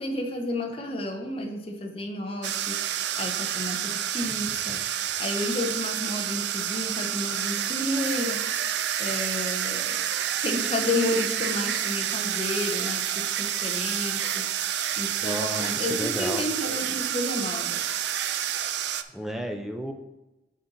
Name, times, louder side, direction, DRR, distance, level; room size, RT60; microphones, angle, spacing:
voice 1, 0.0-2.8 3.2-4.8 5.2-8.4 9.0-10.0 10.4-14.5 15.0-17.8, left 1 dB, 30° left, 2 dB, 0.8 m, -31 dB
sound 1, 2.4-19.0, right 10 dB, 65° right, 0.4 m, -29 dB
voice 2, 15.2-16.4 19.1-19.9, equal, ahead, 3 dB, 0.6 m, -33 dB
6.5 x 5.5 x 3.9 m, 0.99 s
head